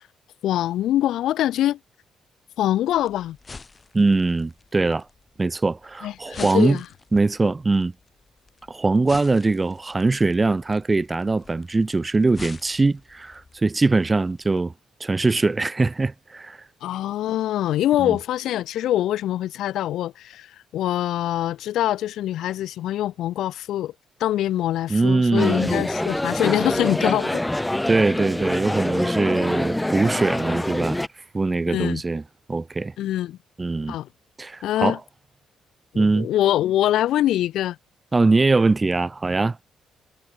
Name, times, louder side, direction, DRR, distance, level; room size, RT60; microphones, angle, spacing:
voice 1, 0.4-1.8 2.6-3.4 6.0-6.8 16.8-20.5 20.7-23.9 24.2-27.4 31.7-32.0 33.0-33.4 33.9-34.1 34.6-35.0 35.9-37.8, left 13 dB, 80° left, 1.9 m, -24 dB
sound 1, 2.9-14.6, left 4 dB, 30° left, 3.3 m, -46 dB
voice 2, 3.9-5.0 5.4-6.8 7.1-7.9 8.7-14.7 15.0-16.6 18.0-18.2 24.9-25.9 27.9-31.0 31.3-32.2 32.5-32.9 33.6-34.0 34.4-35.0 35.9-36.3 38.1-39.6, right 3 dB, 25° right, 1.3 m, -22 dB
sound 2, 25.3-31.1, left 1 dB, 10° left, 0.3 m, -25 dB
cardioid pair, 90°, 0 cm